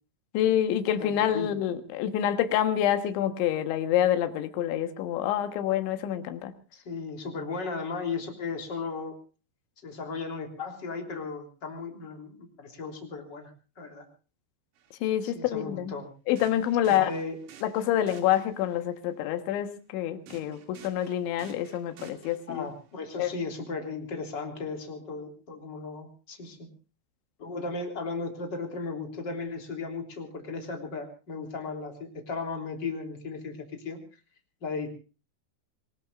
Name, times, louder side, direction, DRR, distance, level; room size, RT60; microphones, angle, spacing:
voice 1, 0.3-6.5 15.0-15.9 16.3-17.1 17.6-22.7 23.2-23.3, left 11 dB, 75° left, 8 dB, 3.6 m, -27 dB
voice 2, 1.0-1.5 6.7-9.1 9.8-13.5 13.8-14.1 15.2-16.1 16.9-17.4 22.5-26.7 27.4-34.0 34.6-34.9, left 4 dB, 25° left, 3 dB, 3.2 m, -36 dB
sound 1, 14.8-14.9 16.4-18.8 20.3-22.9, right 6 dB, 80° right, 5.0 m, -52 dB
26.0 x 19.5 x 2.5 m, 0.35 s
omnidirectional pair, 5.4 m